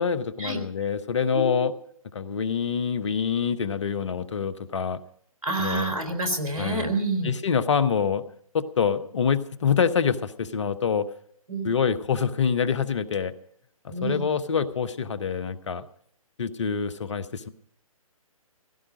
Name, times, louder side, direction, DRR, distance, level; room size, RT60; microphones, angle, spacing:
voice 1, 0.0-1.7 2.1-5.0 5.6-5.9 6.6-6.9 7.2-8.2 8.5-11.1 11.6-13.3 13.8-15.8 16.4-17.5, left 6 dB, 55° left, 14 dB, 1.1 m, -26 dB
voice 2, 1.3-1.6 5.4-7.3 11.5-11.7 13.9-14.3, right 2 dB, 75° right, 6 dB, 3.7 m, -28 dB
16.5 x 15.5 x 5.1 m, 0.64 s
figure-of-eight pair, 135°, 19 cm